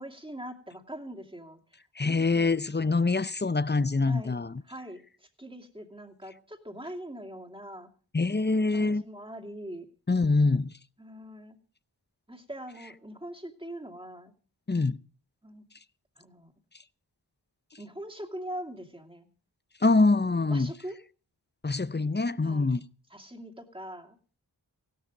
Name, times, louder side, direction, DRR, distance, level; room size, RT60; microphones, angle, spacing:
voice 1, 0.0-1.6 2.0-2.5 4.1-4.3 4.6-7.9 8.7-9.9 11.0-11.6 12.3-14.3 15.4-15.6 16.2-16.5 17.8-19.3 20.5-21.0 22.4-22.7 23.1-24.2, right 1 dB, 10° right, 2.5 m, -42 dB
voice 2, 2.0-4.6 8.1-9.0 10.1-10.7 14.7-15.0 19.8-20.7 21.6-22.8, left 3 dB, 25° left, 0.6 m, -25 dB
16.5 x 12.5 x 5.1 m
wide cardioid pair, 45°, 42 cm